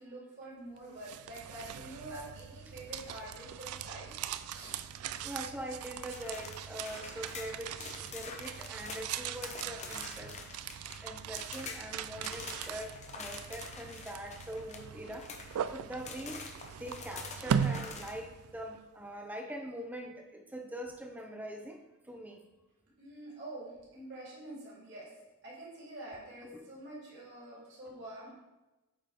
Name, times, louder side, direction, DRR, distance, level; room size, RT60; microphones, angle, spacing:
voice 1, 0.0-4.8 5.1-5.3 23.0-25.1 25.4-28.3, right 1 dB, 50° right, -5 dB, 2.3 m, -47 dB
sound 1, 0.8-18.8, right 8 dB, 75° right, 0.3 m, -40 dB
voice 2, 5.2-10.4 10.7-16.5 16.8-22.5 26.5-26.6, right 1 dB, 5° right, 3 dB, 0.6 m, -43 dB
sound 2, 6.1-11.0 11.3-11.8 12.2-15.7 16.1-18.1, left 4 dB, 30° left, 0.6 m, -46 dB
8.6 x 3.8 x 3.4 m, 1.1 s
head